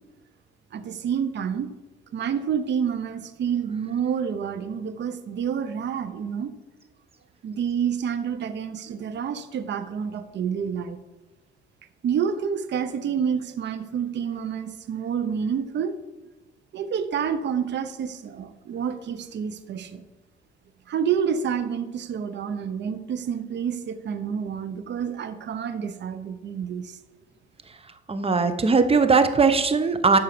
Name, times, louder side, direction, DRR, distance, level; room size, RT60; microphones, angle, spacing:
voice 1, 0.7-1.7 2.1-6.5 7.4-11.0 12.0-16.0 16.7-20.0 20.9-27.0, right 7 dB, 60° right, 11 dB, 0.9 m, -28 dB
voice 2, 28.1-30.2, right 4 dB, 30° right, 10 dB, 1.1 m, -19 dB
12.5 x 4.7 x 6.8 m, 1.1 s
cardioid pair, 90°, 20 cm